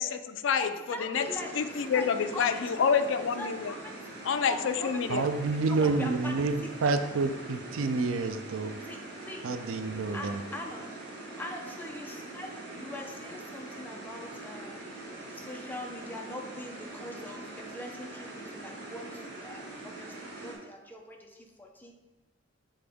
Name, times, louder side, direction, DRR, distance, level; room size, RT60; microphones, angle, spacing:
voice 1, 0.0-0.7 1.0-1.3 1.6-3.7 4.2-5.3, left 6 dB, 65° left, 10 dB, 0.4 m, -28 dB
voice 2, 0.6-1.5 1.9-2.6 3.2-3.9 4.5-5.3 5.6-6.9 8.8-9.4 10.1-11.0 11.4-15.0 15.3-21.9, left 1 dB, 10° left, 1 dB, 0.6 m, -42 dB
sound 1, 1.1-20.5, right 2 dB, 55° right, 1.5 m, -43 dB
voice 3, 5.1-8.8 9.4-10.4, right 3 dB, 85° right, 9 dB, 0.4 m, -29 dB
7.1 x 3.8 x 3.5 m, 1.2 s
head